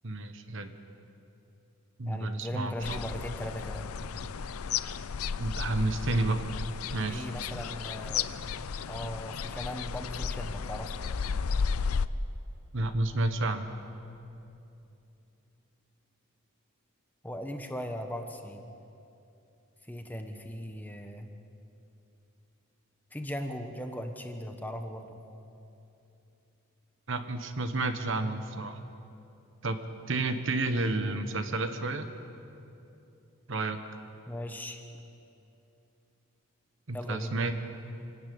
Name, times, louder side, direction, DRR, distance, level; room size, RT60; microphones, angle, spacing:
voice 1, 0.0-0.7 2.0-3.1 5.4-6.5 6.9-7.3 12.7-13.7 27.1-28.8 29.6-29.8 30.1-32.1 33.5-33.8 36.9-37.6, right 2 dB, 60° right, 8 dB, 1.2 m, -30 dB
voice 2, 2.1-3.9 7.1-8.3 8.9-10.9 17.2-18.7 19.9-21.3 23.1-25.2 34.3-34.8 36.9-37.4, equal, 10° left, 5 dB, 1.1 m, -38 dB
sound 1, 2.8-12.1, left 6 dB, 85° left, 0.5 m, -34 dB
26.0 x 12.0 x 8.6 m, 2.8 s
head